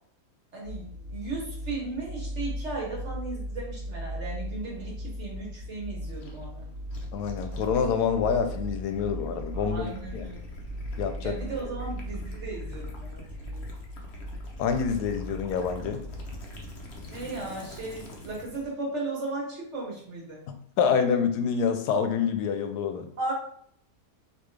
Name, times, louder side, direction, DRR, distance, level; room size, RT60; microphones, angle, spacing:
voice 1, 0.5-6.6 9.5-10.6 11.2-13.7 17.1-20.4 23.2-23.3, right 3 dB, 50° right, -3 dB, 1.5 m, -36 dB
sound 1, 0.6-17.4, equal, 75° right, 1.4 m, -38 dB
Gurgling / Liquid, 6.1-18.7, left 2 dB, 50° left, 0.9 m, -45 dB
voice 2, 7.1-10.3 11.0-11.3 14.6-16.0 20.5-23.1, left 6 dB, 90° left, 7 dB, 1.2 m, -27 dB
4.2 x 2.9 x 3.2 m, 0.64 s
omnidirectional pair, 1.7 m